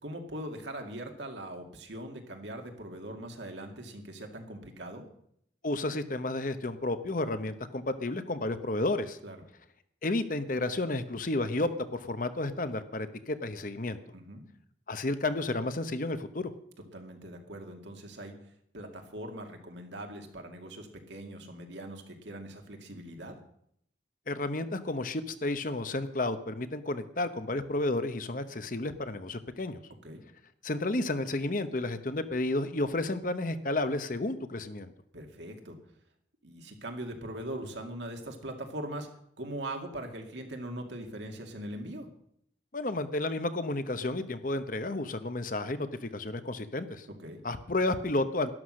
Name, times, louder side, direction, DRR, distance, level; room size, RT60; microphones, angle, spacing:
voice 1, 0.0-5.1 9.2-9.4 14.1-14.4 16.9-18.3 18.7-23.4 30.0-30.2 35.1-35.8 36.4-39.1 39.4-42.1 47.2-47.4, right 1 dB, 70° right, 3 dB, 2.3 m, -41 dB
voice 2, 5.6-9.2 10.0-14.0 14.9-16.5 24.3-29.8 30.6-34.9 42.7-47.1 47.4-48.5, left 2 dB, 45° left, 10 dB, 0.9 m, -31 dB
12.5 x 11.5 x 6.4 m, 0.71 s
head